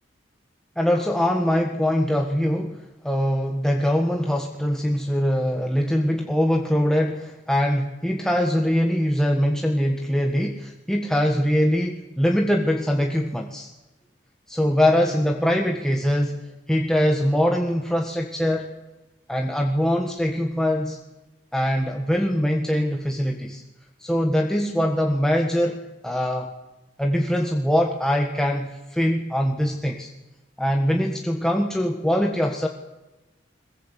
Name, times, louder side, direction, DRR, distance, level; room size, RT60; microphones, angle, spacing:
voice 1, 0.7-13.7 14.5-16.4 16.7-18.7 19.3-21.0 21.5-23.6 24.0-26.5 27.0-30.1 30.6-32.7, equal, 5° left, 1 dB, 1.6 m, -22 dB
22.0 x 21.0 x 8.4 m, 1.0 s
head